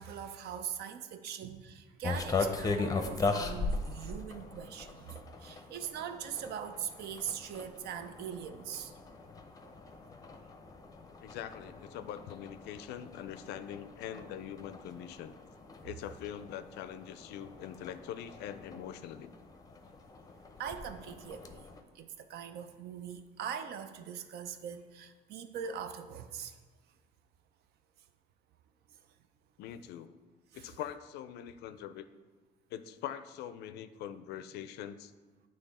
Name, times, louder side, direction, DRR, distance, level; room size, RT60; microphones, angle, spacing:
voice 1, 0.0-8.9 20.6-21.7 21.9-26.6 30.5-30.7, right 8 dB, 70° right, 9 dB, 0.5 m, -41 dB
sound 1, 2.0-21.8, left 3 dB, 20° left, 0.6 m, -40 dB
voice 2, 11.2-15.3 15.8-19.3 29.6-30.2 30.5-32.1 32.7-35.1, left 10 dB, 80° left, 12 dB, 0.4 m, -43 dB
8.8 x 3.1 x 4.1 m, 1.3 s
cardioid pair, 110°, 17 cm